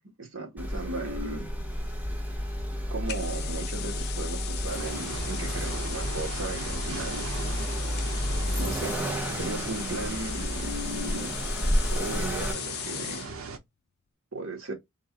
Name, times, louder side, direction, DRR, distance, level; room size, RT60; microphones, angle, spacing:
voice 1, 0.0-1.5 2.9-7.3 8.6-9.1 9.4-11.3 11.9-13.3 14.3-14.7, right 2 dB, 70° right, 1.6 m, -36 dB
Accelerating revving vroom, 0.6-12.5, equal, 10° right, 0.8 m, -31 dB
sound 1, 3.1-13.3, left 12 dB, 50° left, 0.4 m, -38 dB
sound 2, 4.7-13.6, right 3 dB, 90° right, 0.8 m, -38 dB
3.8 x 2.5 x 4.1 m
head